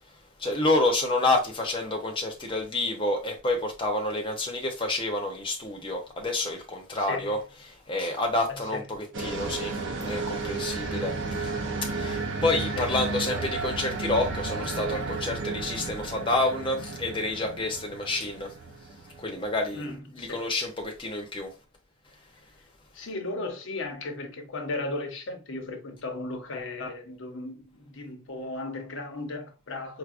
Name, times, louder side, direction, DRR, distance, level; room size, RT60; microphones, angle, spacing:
voice 1, 0.4-7.4 7.7-11.5 11.8-18.5 19.2-19.8 20.1-21.5, left 2 dB, 25° left, 0.8 m, -28 dB
voice 2, 7.0-7.4 8.5-8.8 12.8-12.9 13.3-13.5 19.7-20.5 22.9-30.0, left 2 dB, 60° left, 0.8 m, -36 dB
sound 1, 9.1-19.9, right 3 dB, 60° right, 0.6 m, -33 dB
4.7 x 2.2 x 2.5 m
head